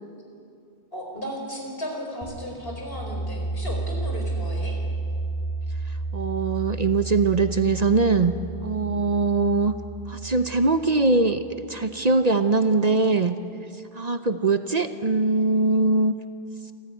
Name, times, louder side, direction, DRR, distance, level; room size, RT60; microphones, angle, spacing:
voice 1, 0.9-4.8, equal, 70° left, 1 dB, 5.1 m, -35 dB
sound 1, 2.2-11.8, right 2 dB, 40° left, 5.6 m, -32 dB
voice 2, 5.9-8.3 8.6-9.7 10.1-11.4 11.7-13.4 13.9-16.1, right 3 dB, 45° right, 9 dB, 0.9 m, -22 dB
27.5 x 15.5 x 9.3 m, 2.5 s
omnidirectional pair, 1.0 m